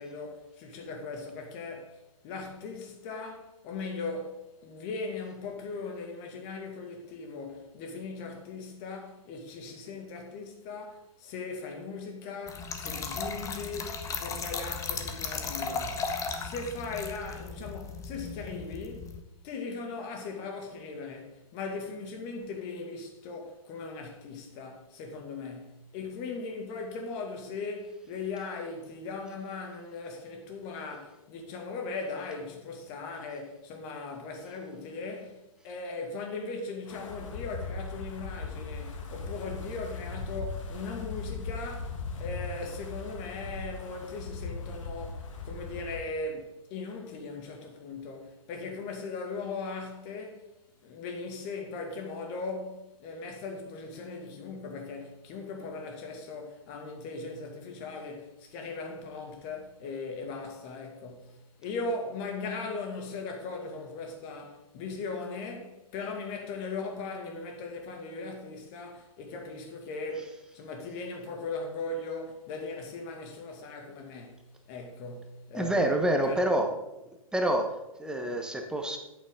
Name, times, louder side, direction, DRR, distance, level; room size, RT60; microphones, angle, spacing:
voice 1, 0.0-19.2 19.4-50.5 50.8-76.5, left 3 dB, 35° left, 2.3 m, -39 dB
Trickle dribble / Fill (with liquid), 12.5-19.2, left 5 dB, 15° left, 1.0 m, -36 dB
Wind, 36.9-46.0, left 4 dB, 60° left, 1.7 m, -38 dB
voice 2, 75.5-76.7 77.3-79.0, right 1 dB, 5° right, 1.2 m, -27 dB
10.5 x 8.7 x 3.8 m
hypercardioid pair, 120°, 18 cm